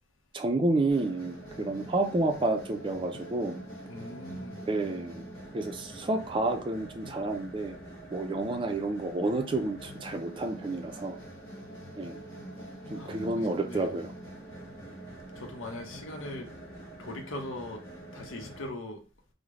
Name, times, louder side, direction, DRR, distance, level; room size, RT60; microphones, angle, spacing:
voice 1, 0.3-3.6 4.7-5.3 5.5-7.7 8.1-11.1 12.0-12.2 12.9-14.1, right 2 dB, 25° right, 5 dB, 0.4 m, -30 dB
sound 1, 0.9-18.7, right 1 dB, 20° left, 1.5 m, -45 dB
voice 2, 3.9-4.6 12.9-13.9 15.4-16.5 17.0-17.8 18.1-19.0, left 1 dB, 80° left, 3 dB, 0.7 m, -40 dB
3.2 x 2.1 x 3.6 m, 0.36 s
head